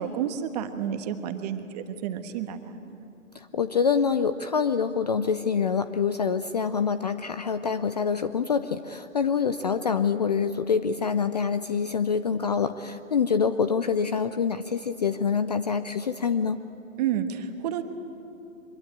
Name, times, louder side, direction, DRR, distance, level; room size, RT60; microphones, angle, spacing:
voice 1, 0.0-3.0 17.0-17.8, right 9 dB, 30° right, 8 dB, 1.4 m, -30 dB
voice 2, 3.3-16.7, left 6 dB, 30° left, 11 dB, 0.5 m, -26 dB
24.5 x 22.0 x 8.7 m, 2.8 s
hypercardioid pair, 145°, 41 cm